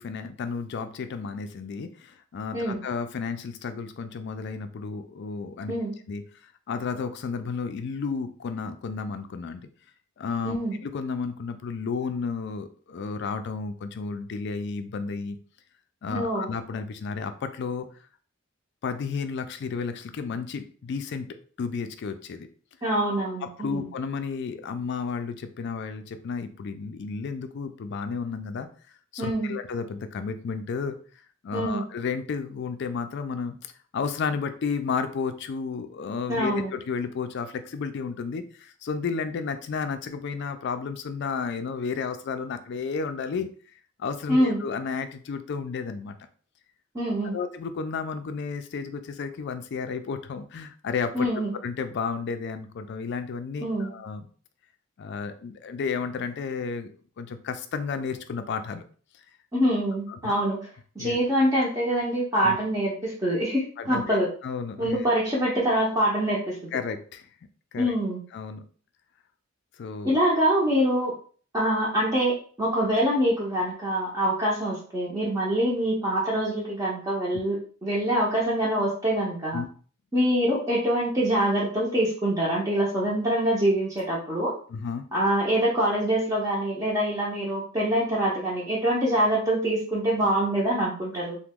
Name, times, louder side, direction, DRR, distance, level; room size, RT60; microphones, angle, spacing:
voice 1, 0.0-5.7 6.1-6.2 6.7-9.7 10.2-15.4 16.0-17.9 18.8-21.3 21.6-22.5 23.4-28.7 29.1-31.0 31.4-43.5 44.0-46.2 47.3-51.3 51.6-54.3 55.0-58.8 60.1-60.3 61.0-61.2 62.3-62.6 63.8-65.0 66.7-67.3 67.7-67.9 68.3-68.6 69.8-70.2 79.5-79.7 84.7-85.1, left 5 dB, 55° left, 9 dB, 0.4 m, -32 dB
voice 2, 10.4-10.7 16.1-16.5 22.8-23.9 29.2-29.5 31.5-31.8 36.3-36.7 44.3-44.6 46.9-47.4 51.1-51.5 53.6-53.9 59.5-60.6 61.0-64.3 64.8-66.7 67.8-68.2 70.0-71.1 71.5-79.6 80.1-84.5 85.1-91.4, right 1 dB, 20° right, -6 dB, 0.6 m, -25 dB
2.9 x 2.1 x 3.5 m, 0.43 s
head